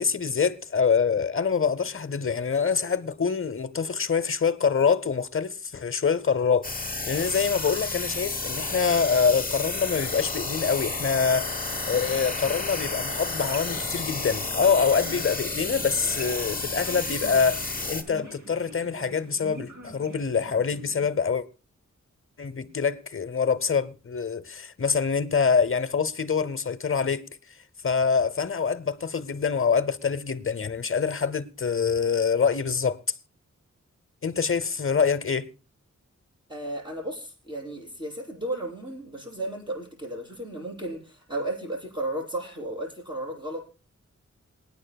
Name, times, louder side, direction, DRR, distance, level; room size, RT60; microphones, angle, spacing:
voice 1, 0.0-21.4 22.4-27.2 27.8-33.0 34.2-35.5, left 6 dB, 45° left, 0.8 m, -25 dB
sound 1, 6.6-18.0, left 3 dB, 30° left, 1.2 m, -31 dB
sound 2, 11.6-21.2, right 1 dB, 90° right, 2.7 m, -45 dB
voice 2, 36.5-43.6, right 1 dB, 15° right, 7.2 m, -34 dB
27.0 x 9.6 x 2.3 m
wide cardioid pair, 65°, 30 cm